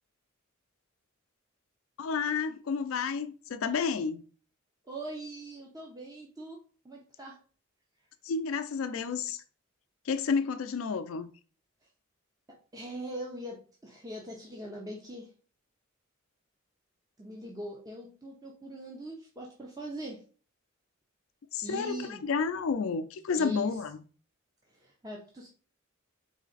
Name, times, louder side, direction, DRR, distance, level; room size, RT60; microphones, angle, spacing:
voice 1, 2.0-4.2 8.2-9.4 10.1-11.3 21.5-24.0, left 5 dB, 70° left, 0.4 m, -31 dB
voice 2, 4.8-6.6 6.8-7.3 12.7-15.3 17.2-20.2 21.6-22.2 23.4-23.7 24.7-25.5, right 1 dB, 20° right, 0.7 m, -41 dB
4.0 x 3.2 x 3.9 m
head